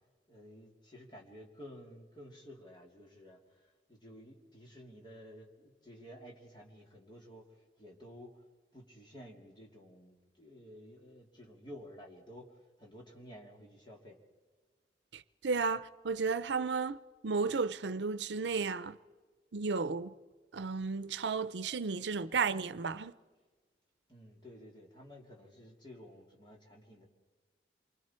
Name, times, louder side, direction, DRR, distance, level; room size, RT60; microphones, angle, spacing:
voice 1, 0.3-8.4 8.7-14.2 24.1-27.1, equal, 25° left, 3.0 m, -53 dB
voice 2, 15.1-17.0 17.2-19.0 19.5-20.1 20.5-23.1, right 4 dB, 85° right, 0.6 m, -33 dB
28.0 x 24.5 x 4.5 m
head